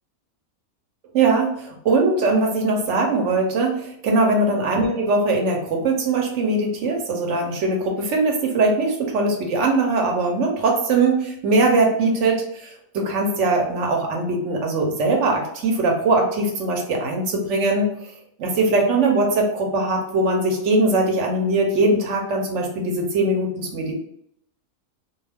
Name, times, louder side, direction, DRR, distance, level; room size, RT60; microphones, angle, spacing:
voice 1, 1.1-18.1 18.4-23.9, right 2 dB, 65° right, 1 dB, 1.0 m, -21 dB
2.4 x 2.3 x 3.3 m, 0.74 s
omnidirectional pair, 1.5 m